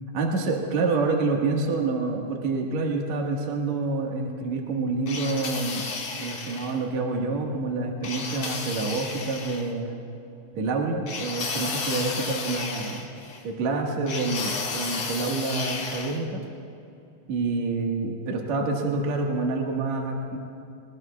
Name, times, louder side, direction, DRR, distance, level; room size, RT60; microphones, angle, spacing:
voice 1, 0.1-5.8 6.2-10.0 10.5-13.1 13.4-16.4 17.3-20.4, right 3 dB, 70° right, 0 dB, 1.7 m, -27 dB
sound 1, 5.1-6.8 8.0-9.7 11.1-13.4 14.1-16.2, left 4 dB, 75° left, 1.3 m, -33 dB
23.0 x 20.5 x 2.3 m, 2.7 s
omnidirectional pair, 5.5 m